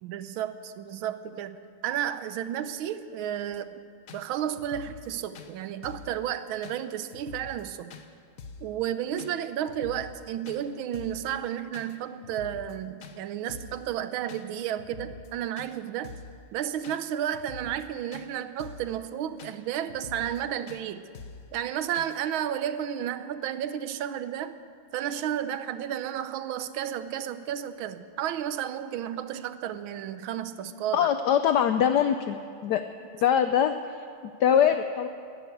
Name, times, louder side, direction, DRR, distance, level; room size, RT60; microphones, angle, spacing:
voice 1, 0.0-3.8 4.1-8.0 8.6-16.2 16.5-21.0 21.5-24.6 24.9-31.1, right 10 dB, 75° right, 12 dB, 1.5 m, -32 dB
sound 1, 3.5-3.6 4.1-4.2 4.5-5.1 5.3-5.5 5.8-6.1 6.6-6.8 7.1-7.6 7.9-8.0 8.4-8.7 9.2-9.3 9.7-10.2 10.5-10.6 10.9-11.2 11.7-11.9 12.2-12.7 13.0-13.2 13.5-13.8 14.3-14.4 14.8-15.3 15.6-15.7 16.0-16.3 16.8-17.0 17.3-17.8 18.1-18.3 18.6-18.9 19.4-19.5 19.9-20.4 20.7-20.8 21.1-21.5 21.9-22.2, left 5 dB, 50° left, 1.1 m, -45 dB
voice 2, 30.9-32.8 33.1-35.1, left 8 dB, 80° left, 9 dB, 0.9 m, -23 dB
14.5 x 11.5 x 8.4 m, 2.3 s
omnidirectional pair, 2.4 m